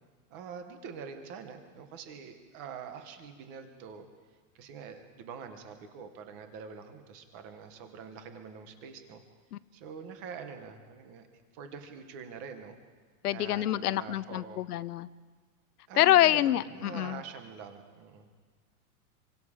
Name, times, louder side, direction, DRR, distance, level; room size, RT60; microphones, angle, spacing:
voice 1, 0.3-4.1 4.5-9.2 9.7-11.3 11.5-12.7 13.2-14.6 15.9-18.3, right 6 dB, 10° right, 7 dB, 0.6 m, -45 dB
voice 2, 13.2-15.1 16.0-17.2, left 13 dB, 75° left, 17 dB, 0.8 m, -26 dB
27.0 x 24.0 x 4.8 m, 1.5 s
supercardioid pair, 180°, 47 cm